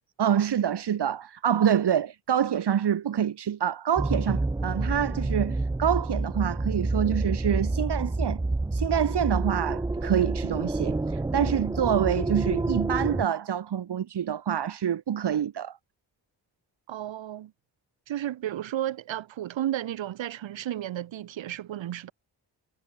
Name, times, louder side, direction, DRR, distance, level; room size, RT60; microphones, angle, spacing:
voice 1, 0.2-8.4 8.7-15.8, right 9 dB, 65° right, 1.4 m, -26 dB
sound 1, 4.0-13.2, right 2 dB, 10° right, 0.5 m, -28 dB
voice 2, 16.9-17.5 18.1-22.1, right 12 dB, 85° right, 1.5 m, -33 dB
cardioid pair, 50°, 44 cm